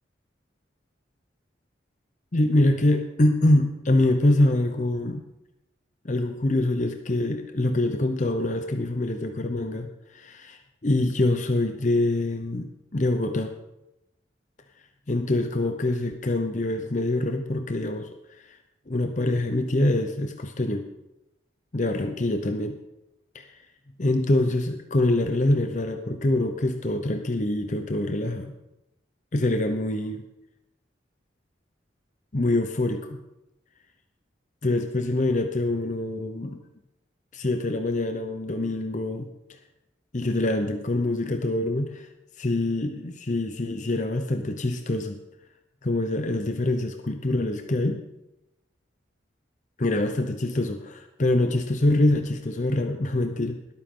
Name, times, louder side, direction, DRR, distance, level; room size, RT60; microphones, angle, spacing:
voice 1, 2.3-5.2 6.0-13.5 15.1-18.4 18.9-20.9 21.7-22.8 23.3-23.5 24.0-28.5 29.3-30.2 32.3-33.2 34.6-36.6 37.3-39.3 40.1-42.1 42.4-45.2 45.8-48.0 49.8-53.6, left 1 dB, 40° left, 6 dB, 0.7 m, -25 dB
20.5 x 8.7 x 3.7 m, 0.92 s
head